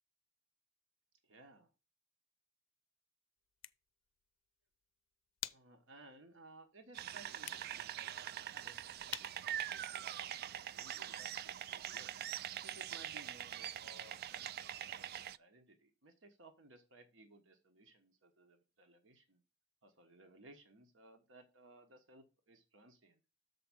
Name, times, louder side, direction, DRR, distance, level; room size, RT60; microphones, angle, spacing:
voice 1, 1.2-1.7 5.5-10.3 10.6-12.1 12.6-19.4 19.8-23.2, right 2 dB, 70° right, 6 dB, 1.2 m, -60 dB
sound 1, 3.4-10.8, left 14 dB, 75° left, 0.5 m, -53 dB
sound 2, 6.9-15.4, right 10 dB, 50° right, 0.3 m, -43 dB
6.8 x 4.7 x 6.2 m, 0.30 s
head